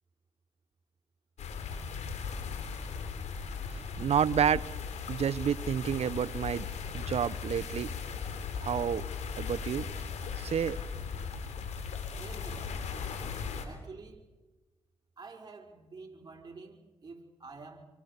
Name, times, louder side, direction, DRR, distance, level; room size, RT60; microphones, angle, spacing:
sound 1, 1.4-13.6, left 6 dB, 80° left, 3.7 m, -38 dB
voice 1, 4.0-4.7 5.1-6.7 6.9-7.9 8.6-9.0 9.4-9.9 10.4-10.8, right 8 dB, 65° right, 0.8 m, -29 dB
voice 2, 12.2-12.7 13.6-14.2 15.2-17.9, right 4 dB, 35° right, 5.1 m, -48 dB
27.5 x 25.0 x 6.7 m
cardioid pair, 60°, 11 cm